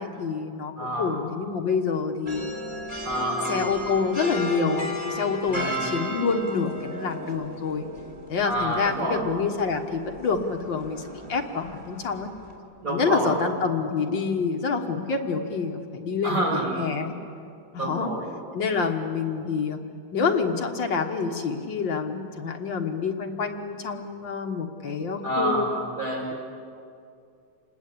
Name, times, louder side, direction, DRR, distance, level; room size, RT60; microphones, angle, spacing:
voice 1, 0.0-2.4 3.5-7.8 8.3-12.3 12.9-17.1 17.7-18.1 18.5-19.8 20.1-25.7, left 5 dB, 70° left, 4 dB, 2.2 m, -27 dB
voice 2, 0.8-1.1 3.0-3.6 5.5-5.9 8.5-9.2 12.8-13.4 16.2-16.7 17.8-18.3 25.2-26.3, right 1 dB, 40° right, -2 dB, 5.9 m, -28 dB
sound 1, 2.3-12.6, left 1 dB, 15° right, 3.7 m, -35 dB
28.0 x 20.0 x 8.5 m, 2.5 s
omnidirectional pair, 2.2 m